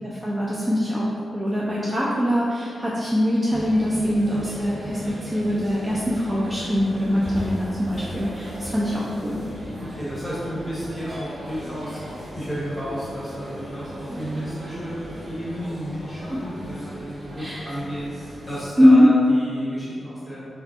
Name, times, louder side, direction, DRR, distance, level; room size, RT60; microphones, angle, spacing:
voice 1, 0.0-1.1 1.3-9.4 14.1-14.4 16.3-16.4 17.4-17.7 18.8-19.1, equal, 20° right, -6 dB, 0.3 m, -22 dB
sound 1, 3.5-18.6, equal, 45° right, 0.9 m, -37 dB
voice 2, 9.1-9.4 9.8-20.4, equal, 15° left, -10 dB, 1.2 m, -33 dB
2.4 x 2.2 x 2.4 m, 2.3 s
cardioid pair, 70°, 0 cm